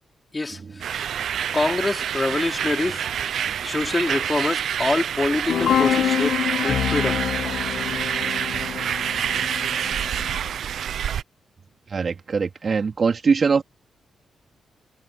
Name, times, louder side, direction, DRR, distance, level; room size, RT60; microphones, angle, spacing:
voice 1, 0.3-1.0 1.5-3.1 3.6-7.2, left 2 dB, 25° left, 5.0 m, -25 dB
sound 1, 0.8-11.2, right 9 dB, 75° right, 0.9 m, -27 dB
sound 2, 5.5-10.5, left 9 dB, 70° left, 1.7 m, -26 dB
voice 2, 11.9-13.6, right 5 dB, 50° right, 3.8 m, -22 dB
cardioid pair, 75°, 0 cm